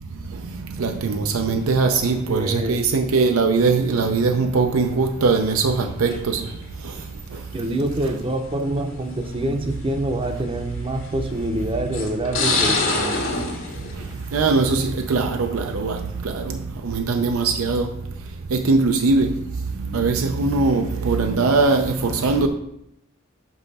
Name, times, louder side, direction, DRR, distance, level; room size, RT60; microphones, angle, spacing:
voice 1, 0.8-6.4 14.3-16.6 16.8-17.9 18.5-19.3 19.9-22.5, right 4 dB, 90° right, 0.5 m, -20 dB
voice 2, 1.9-2.8 7.5-13.2, right 1 dB, 25° right, 0.6 m, -26 dB
sound 1, 6.1-6.5 7.5-7.6 8.7-8.8 9.3-9.4 10.8-11.2 11.9-14.8 15.2-15.6, left 3 dB, 80° left, 1.5 m, -25 dB
5.6 x 5.5 x 4.0 m
head